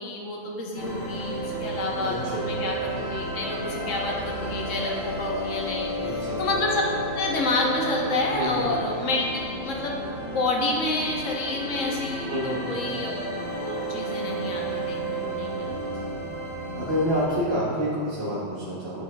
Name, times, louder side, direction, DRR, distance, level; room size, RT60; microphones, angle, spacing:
voice 1, 0.0-5.9 6.4-6.8 7.1-9.2 9.6-13.3 13.6-15.9, left 2 dB, 85° left, -2 dB, 1.3 m, -29 dB
sound 1, 0.8-17.3, right 1 dB, 45° left, 1.1 m, -32 dB
voice 2, 2.0-2.4 6.0-6.4 8.3-8.7 12.3-12.6 16.7-19.0, equal, 55° right, -9 dB, 1.2 m, -28 dB
9.0 x 4.8 x 2.3 m, 2.2 s
omnidirectional pair, 1.3 m